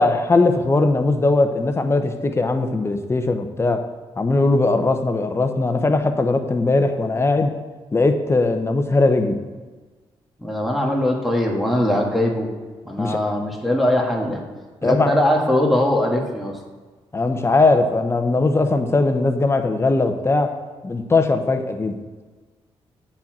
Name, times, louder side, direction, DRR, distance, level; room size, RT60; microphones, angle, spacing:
voice 1, 0.0-3.8 4.2-7.5 7.9-9.4 13.0-13.2 14.8-15.1 17.1-20.5 20.8-22.0, left 3 dB, 25° left, 6 dB, 0.9 m, -19 dB
voice 2, 10.4-12.5 12.8-14.4 14.8-16.6, left 1 dB, ahead, -1 dB, 1.6 m, -21 dB
8.3 x 4.4 x 6.1 m, 1.4 s
cardioid pair, 90°, 11 cm